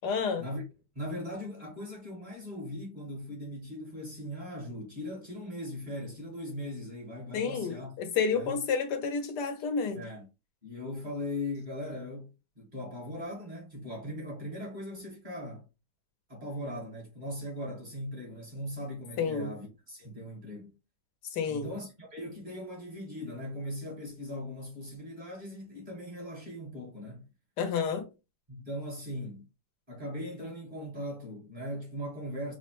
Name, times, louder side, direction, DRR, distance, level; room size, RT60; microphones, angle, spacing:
voice 1, 0.0-0.4 7.3-10.0 19.2-19.5 21.3-21.7 27.6-28.0, left 5 dB, 90° left, 1.4 m, -30 dB
voice 2, 0.9-7.9 8.3-8.6 9.9-10.2 10.6-15.6 16.3-20.7 21.5-27.3 28.5-29.4 29.9-32.5, left 1 dB, 30° right, 1.5 m, -39 dB
4.7 x 2.1 x 3.0 m
omnidirectional pair, 1.7 m